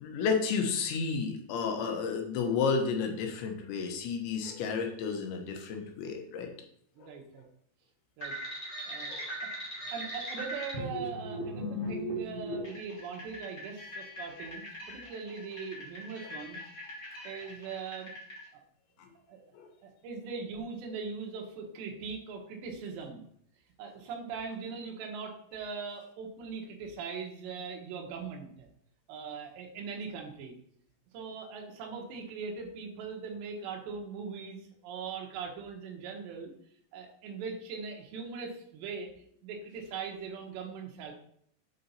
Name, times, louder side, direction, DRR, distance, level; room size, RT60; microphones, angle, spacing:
voice 1, 0.0-6.5 7.0-7.1 9.1-9.2 19.0-19.1 19.5-19.7, left 5 dB, 90° left, 3 dB, 3.3 m, -32 dB
voice 2, 7.0-7.4 8.2-8.3 8.9-9.2 9.4-9.5 9.9-16.6 17.2-18.1 18.5-18.6 19.3-19.4 19.8-23.3 23.8-28.7 29.1-30.6 31.1-36.5 36.9-39.1 39.4-41.1, right 5 dB, 80° right, 1 dB, 3.3 m, -40 dB
sound 1, 8.2-18.4, equal, 35° left, 1.3 m, -39 dB
8.3 x 4.0 x 4.2 m, 0.66 s
omnidirectional pair, 5.2 m